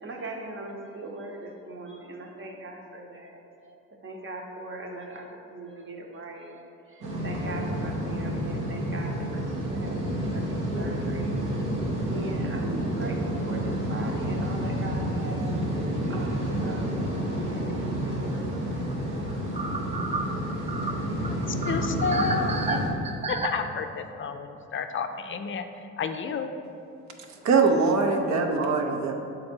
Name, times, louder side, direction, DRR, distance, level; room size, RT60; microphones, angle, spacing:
voice 1, 0.0-6.5 6.9-11.4 12.1-15.5 16.1-17.2 17.5-18.6, right 2 dB, 40° right, 1 dB, 1.0 m, -40 dB
sound 1, 7.0-22.9, right 1 dB, 85° right, 1.2 m, -29 dB
sound 2, 15.4-15.6 16.0-16.1 18.5-18.6 18.9-19.0 19.3-23.5, right 3 dB, 20° right, 0.5 m, -32 dB
voice 2, 21.3-22.9 23.3-25.7 26.0-26.5, left 6 dB, 40° left, 7 dB, 0.4 m, -31 dB
voice 3, 27.3-29.1, right 4 dB, 65° right, 3 dB, 0.7 m, -22 dB
6.4 x 4.0 x 4.4 m, 2.7 s
cardioid pair, 90°, 30 cm